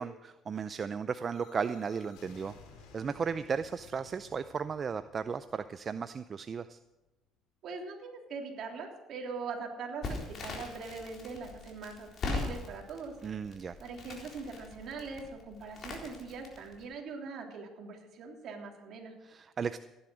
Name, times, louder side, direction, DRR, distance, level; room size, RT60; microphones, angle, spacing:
voice 1, 0.0-2.5 2.9-6.8 13.2-13.8 19.2-19.8, right 6 dB, 35° right, 12 dB, 0.5 m, -35 dB
sound 1, 1.3-7.1, left 4 dB, 85° left, 3.4 m, -57 dB
voice 2, 7.6-13.1 13.8-19.1, right 4 dB, 55° right, 1 dB, 3.2 m, -42 dB
Crackle, 10.0-16.8, left 3 dB, 45° left, 4.0 m, -41 dB
15.5 x 11.0 x 6.3 m, 1.0 s
cardioid pair, 110°, 0 cm